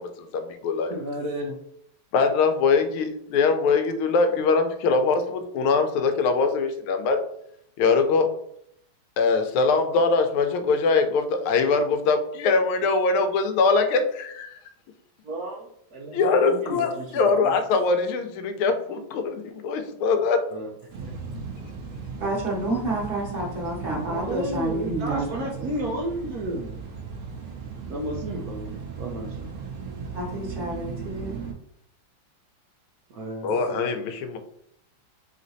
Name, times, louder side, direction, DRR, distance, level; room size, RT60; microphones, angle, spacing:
voice 1, 0.0-0.9 2.1-7.2 7.8-8.3 9.2-14.6 16.1-20.4 33.4-34.4, left 4 dB, 85° left, 7 dB, 1.5 m, -22 dB
voice 2, 0.9-1.6 15.2-17.6 20.5-20.7 21.0-21.1 24.1-26.7 27.9-29.5 33.1-34.0, right 1 dB, 85° right, 0 dB, 0.8 m, -33 dB
sound 1, 20.9-31.5, right 5 dB, 60° right, 1.0 m, -37 dB
voice 3, 22.2-25.5 30.1-31.3, right 1 dB, 30° right, -5 dB, 1.4 m, -29 dB
4.1 x 3.7 x 2.6 m, 0.71 s
omnidirectional pair, 2.3 m